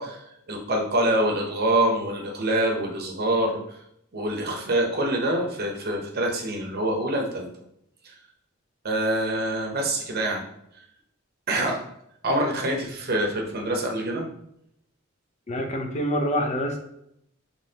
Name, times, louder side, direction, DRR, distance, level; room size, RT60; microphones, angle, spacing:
voice 1, 0.0-3.6 4.1-7.5 8.0-8.1 8.8-10.4 11.5-11.8 12.2-14.2, right 1 dB, 50° right, 1 dB, 0.9 m, -25 dB
voice 2, 15.5-16.8, equal, 35° left, 3 dB, 0.6 m, -26 dB
5.3 x 3.1 x 2.8 m, 0.75 s
head